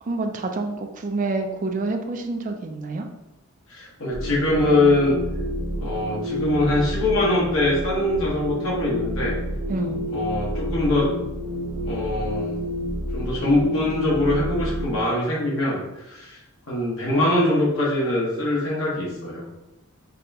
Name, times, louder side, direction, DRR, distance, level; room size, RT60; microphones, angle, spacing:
voice 1, 0.0-3.1 9.7-10.0, right 3 dB, 35° right, 5 dB, 0.4 m, -27 dB
voice 2, 3.7-5.1 5.8-9.3 10.1-11.1 11.9-12.6 13.1-16.4 16.7-19.4, left 1 dB, 75° left, -5 dB, 1.2 m, -23 dB
sound 1, 4.1-15.0, equal, 85° right, 0.8 m, -29 dB
5.3 x 2.2 x 2.7 m, 0.96 s
head